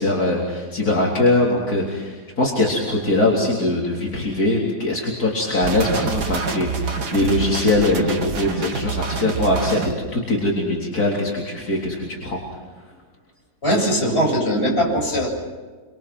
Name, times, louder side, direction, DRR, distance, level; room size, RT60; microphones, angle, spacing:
voice 1, 0.0-12.4, left 2 dB, 70° left, -4 dB, 4.2 m, -21 dB
sound 1, 5.6-9.9, right 5 dB, 85° right, 2.4 m, -27 dB
voice 2, 13.6-15.3, equal, 40° left, -2 dB, 8.1 m, -20 dB
28.5 x 25.5 x 6.2 m, 1.4 s
omnidirectional pair, 1.7 m